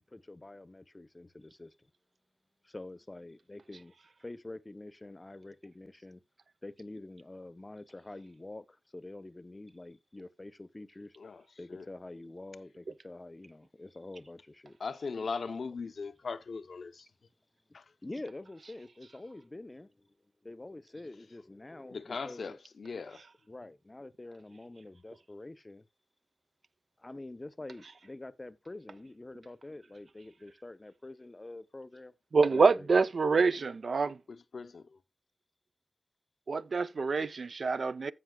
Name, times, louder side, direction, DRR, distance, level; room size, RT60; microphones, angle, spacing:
voice 1, 0.0-1.7 2.6-3.9 4.2-6.2 6.6-11.1 11.6-14.8 18.0-20.1 20.4-22.6 23.5-25.8 27.0-32.1 32.5-32.9, left 2 dB, 25° left, 0.7 m, -46 dB
voice 2, 14.8-17.1 17.7-17.8 21.9-23.2 34.3-35.0, left 4 dB, 85° left, 0.7 m, -39 dB
voice 3, 32.3-34.2 36.5-38.1, right 4 dB, 70° right, 0.5 m, -26 dB
15.5 x 5.7 x 2.2 m
wide cardioid pair, 105°, 0 cm